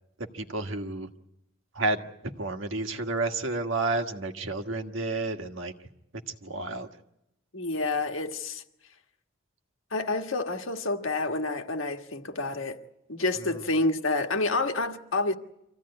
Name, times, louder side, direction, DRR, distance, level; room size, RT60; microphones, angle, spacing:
voice 1, 0.2-1.1 1.7-5.7 6.3-6.9 13.4-13.6, right 2 dB, 65° right, 1.5 m, -31 dB
voice 2, 7.5-8.6 9.9-12.8 13.1-15.3, left 2 dB, 70° left, 1.5 m, -28 dB
25.5 x 15.5 x 9.7 m
head